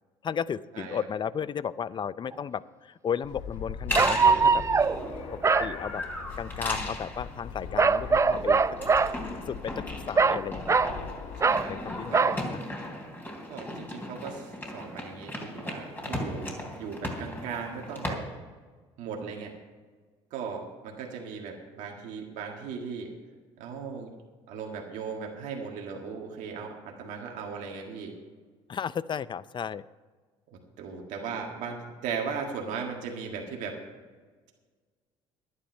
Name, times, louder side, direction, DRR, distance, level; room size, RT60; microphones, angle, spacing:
voice 1, 0.2-4.6 5.6-6.0 6.4-8.6 9.5-10.9 11.7-12.6 28.7-29.8, left 7 dB, 35° left, 18 dB, 0.5 m, -34 dB
voice 2, 0.7-1.1 11.4-12.4 13.5-18.2 19.0-19.6 20.3-23.1 23.6-24.1 24.5-28.2 30.5-33.8, right 5 dB, 70° right, 1 dB, 1.8 m, -37 dB
sound 1, 2.3-2.4 4.0-5.0 5.4-5.7 7.8-9.1 10.2-11.0 11.4-11.7 12.1-12.4, right 5 dB, 20° right, 0.4 m, -22 dB
Fixed-wing aircraft airplane, 3.2-12.1, left 6 dB, 65° left, 1.2 m, -41 dB
sound 2, 3.9-18.1, left 1 dB, 15° left, 3.3 m, -37 dB
11.5 x 10.0 x 5.5 m, 1.4 s
hypercardioid pair, 65°, 14 cm